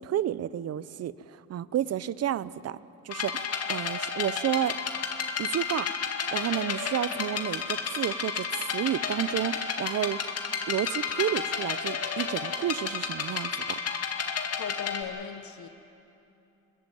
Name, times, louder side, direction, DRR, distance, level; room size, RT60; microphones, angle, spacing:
voice 1, 0.0-2.8 3.0-4.8 5.4-5.9 6.3-10.2 10.7-13.8, right 11 dB, 55° right, 17 dB, 0.7 m, -31 dB
sound 1, 3.1-15.0, left 6 dB, 55° left, 2.1 m, -32 dB
voice 2, 14.6-15.7, left 9 dB, 70° left, 9 dB, 1.1 m, -38 dB
26.0 x 15.0 x 9.3 m, 2.8 s
cardioid pair, 90°, 30 cm